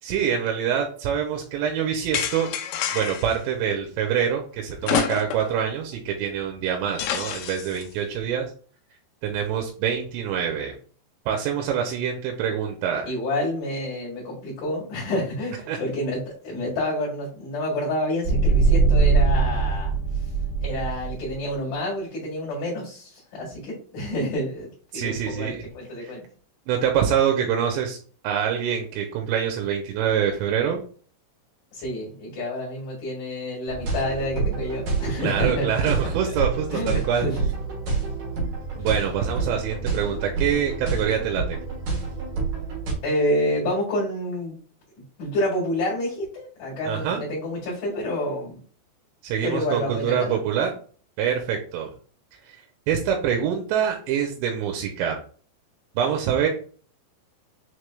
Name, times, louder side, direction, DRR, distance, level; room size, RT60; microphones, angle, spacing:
voice 1, 0.0-2.5 2.9-8.5 9.2-10.8 11.3-13.1 15.7-15.8 24.9-25.6 26.0-26.1 26.7-28.0 28.2-30.8 35.2-37.3 38.8-41.6 46.9-47.2 49.2-50.7 51.2-51.9 52.5-52.6 52.9-55.2 56.0-56.5, right 8 dB, 85° right, 2 dB, 2.8 m, -25 dB
sound 1, 2.1-3.4 4.8-5.6 5.9-6.0 7.0-7.8, left 9 dB, 85° left, 2.3 m, -28 dB
voice 2, 13.0-20.0 20.6-26.2 31.7-35.8 36.3-36.4 36.7-37.4 38.8-38.9 43.0-44.6 45.2-48.6 49.4-50.4, left 1 dB, 55° left, -7 dB, 2.8 m, -28 dB
sound 2, 18.2-21.4, right 4 dB, 35° right, 1.8 m, -21 dB
sound 3, 33.7-42.9, right 4 dB, 60° right, 2.6 m, -28 dB
6.4 x 3.1 x 2.2 m, 0.44 s
omnidirectional pair, 5.1 m